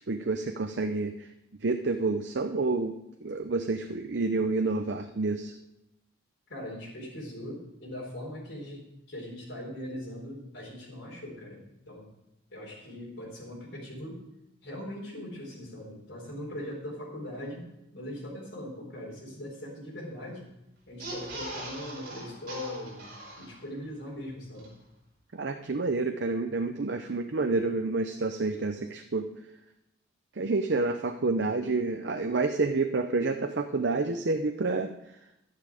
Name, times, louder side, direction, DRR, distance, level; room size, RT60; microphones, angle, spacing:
voice 1, 0.1-1.3 1.6-2.9 3.2-5.5 25.3-29.3 30.4-34.9, right 3 dB, 65° right, 6 dB, 0.7 m, -29 dB
voice 2, 6.5-12.1 12.5-14.2 14.6-17.7 17.9-20.4 20.9-24.7, left 1 dB, 65° left, -5 dB, 4.6 m, -40 dB
sound 1, 20.9-23.9 24.2-24.3 24.5-24.7, right 1 dB, 50° right, 4.8 m, -41 dB
12.0 x 10.5 x 4.9 m, 0.87 s
head